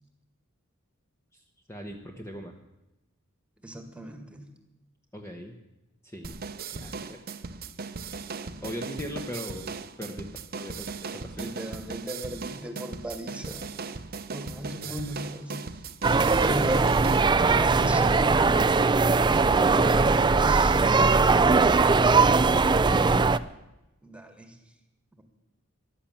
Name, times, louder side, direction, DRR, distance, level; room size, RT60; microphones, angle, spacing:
voice 1, 1.7-2.5 5.1-5.5 6.0-6.3 6.7-7.2 8.6-9.7 10.0-10.3 10.6-10.9 11.1-11.5 14.8-15.0 21.9-23.2, equal, 15° left, 2 dB, 1.1 m, -39 dB
voice 2, 3.6-4.5 8.4-8.6 11.4-13.7 14.3-15.6 16.4-17.2 17.6-18.4 19.0-20.8 24.0-24.6 25.2-25.3, equal, 5° right, 5 dB, 1.9 m, -36 dB
sound 1, 6.2-17.2, right 4 dB, 45° right, 0.8 m, -38 dB
sound 2, 16.0-23.4, right 4 dB, 20° right, 0.4 m, -20 dB
14.5 x 11.5 x 7.2 m, 0.96 s
head